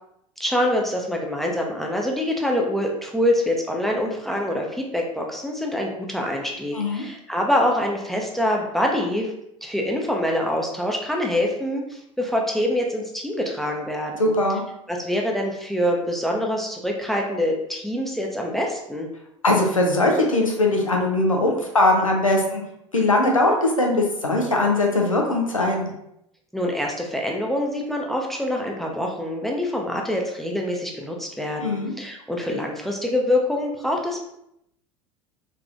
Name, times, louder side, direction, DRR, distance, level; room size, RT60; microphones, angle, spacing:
voice 1, 0.4-9.3 9.6-14.3 14.9-19.1 26.5-34.2, left 1 dB, ahead, 0 dB, 0.6 m, -25 dB
voice 2, 6.7-7.0 14.2-14.6 19.4-22.6 22.9-25.9 31.6-31.9, left 2 dB, 90° left, 1 dB, 0.6 m, -20 dB
3.5 x 3.3 x 2.5 m, 0.79 s
figure-of-eight pair, 70°, 17 cm